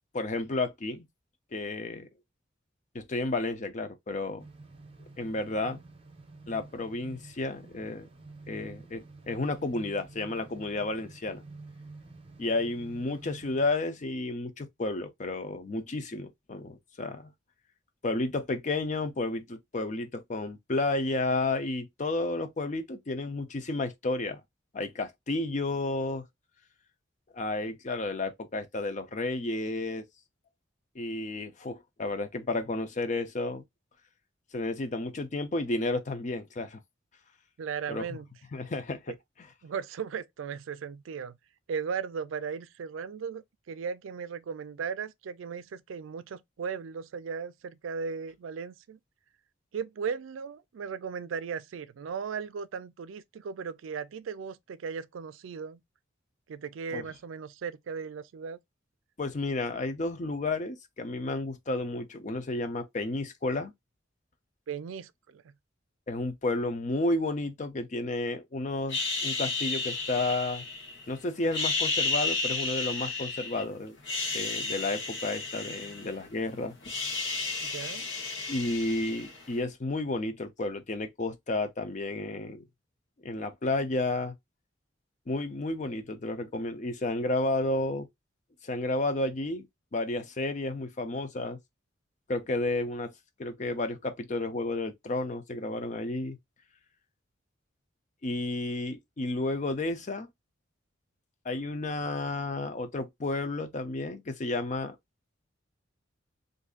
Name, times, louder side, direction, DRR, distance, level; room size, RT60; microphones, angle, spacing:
voice 1, 0.1-1.1 1.5-2.1 2.9-4.4 5.2-5.8 6.5-8.1 8.5-11.4 12.4-17.3 18.0-24.4 24.7-26.3 27.3-30.1 31.0-33.6 34.5-36.8 37.9-38.0 38.5-39.1 56.9-57.0 59.2-63.7 66.1-70.6 71.1-74.0 74.3-76.8 78.5-82.7 83.2-84.3 85.3-88.1 88.6-89.7 89.9-91.6 92.3-93.1 93.4-96.4 98.2-100.3 101.4-105.0, left 2 dB, 40° left, 0.5 m, -32 dB
sound 1, 4.4-13.7, right 3 dB, 30° right, 0.6 m, -49 dB
voice 2, 37.6-38.3 39.6-41.4 41.7-49.0 49.7-55.8 56.5-58.6 64.7-65.4 77.6-78.1, right 6 dB, 90° right, 0.4 m, -37 dB
sound 2, 68.9-71.0 71.4-73.6 74.0-76.4 76.6-79.5, left 3 dB, 65° left, 1.0 m, -32 dB
2.6 x 2.4 x 3.7 m
head